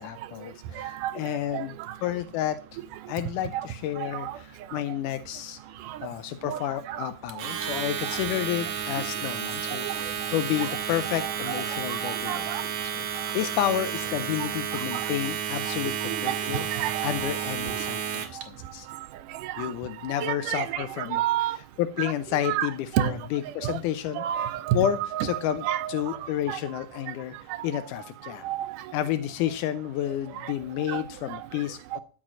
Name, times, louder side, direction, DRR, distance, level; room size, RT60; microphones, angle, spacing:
voice 1, 0.0-1.7 2.0-2.8 3.1-5.6 6.0-12.6 13.0-16.7 17.0-18.9 19.6-21.2 21.8-28.5 28.9-32.0, left 11 dB, 85° left, 2.1 m, -31 dB
voice 2, 0.8-1.1 1.5-1.7 3.5-3.6 4.1-4.3 5.9-6.0 6.5-6.6 6.9-7.1 11.2-12.6 14.9-15.1 16.1-17.1 19.4-19.7 20.2-21.6 22.0-22.1 22.4-23.1 23.6-23.8 24.2-26.6 28.4-28.8 30.4-30.5 30.9-31.0 31.3-31.4, right 12 dB, 85° right, 2.4 m, -30 dB
Domestic sounds home sounds, 7.3-18.4, right 8 dB, 70° right, 2.6 m, -32 dB
13.0 x 6.3 x 6.1 m
omnidirectional pair, 3.6 m